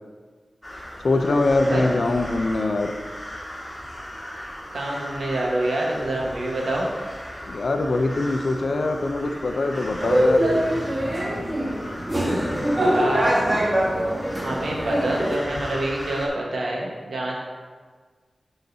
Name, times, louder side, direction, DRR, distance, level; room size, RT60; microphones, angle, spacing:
sound 1, 0.6-16.3, equal, 20° left, 1.7 m, -37 dB
voice 1, 1.0-2.9 7.5-10.4, left 2 dB, 70° left, 6 dB, 0.5 m, -22 dB
voice 2, 4.7-6.9 12.8-13.4 14.3-17.4, right 1 dB, 85° right, -2 dB, 1.3 m, -27 dB
sound 2, 10.0-15.3, right 1 dB, 35° right, 1.5 m, -23 dB
10.5 x 4.0 x 2.7 m, 1.5 s
cardioid pair, 55°, 0 cm